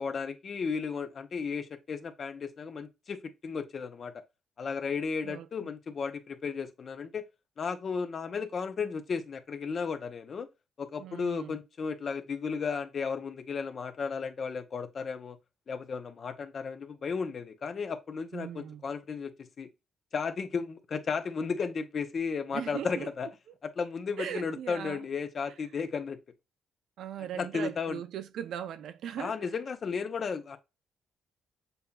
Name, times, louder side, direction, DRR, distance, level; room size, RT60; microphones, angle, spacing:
voice 1, 0.0-4.1 4.6-7.2 7.6-10.5 10.8-15.4 15.7-19.7 20.1-23.3 23.6-26.2 27.4-28.0 29.2-30.6, left 5 dB, 50° left, 0.7 m, -34 dB
voice 2, 11.0-11.6 18.3-18.8 22.5-23.1 24.2-25.1 27.0-29.5, right 9 dB, 75° right, 0.5 m, -39 dB
6.8 x 2.8 x 2.3 m
cardioid pair, 90°, 0 cm